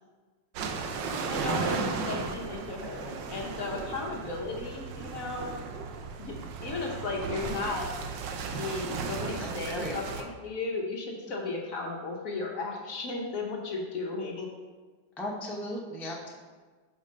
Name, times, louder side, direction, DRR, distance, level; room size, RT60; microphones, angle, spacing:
sound 1, 0.5-10.2, right 4 dB, 80° right, 1.3 m, -35 dB
voice 1, 1.3-5.5 6.2-6.4 6.6-7.9 8.5-14.5, left 3 dB, 55° left, 0 dB, 1.1 m, -35 dB
voice 2, 9.4-10.0 15.2-16.3, left 1 dB, ahead, -3 dB, 0.4 m, -37 dB
6.3 x 4.2 x 5.1 m, 1.4 s
omnidirectional pair, 1.9 m